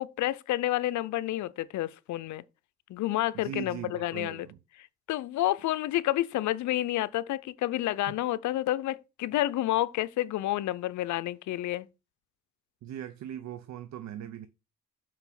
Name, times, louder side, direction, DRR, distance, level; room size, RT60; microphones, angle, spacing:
voice 1, 0.0-2.4 2.9-4.5 5.1-11.9, left 15 dB, 70° left, 0.6 m, -29 dB
voice 2, 3.3-4.6 8.1-8.2 12.8-14.5, right 10 dB, 65° right, 0.7 m, -40 dB
6.0 x 4.7 x 5.7 m
cardioid pair, 90°, 30 cm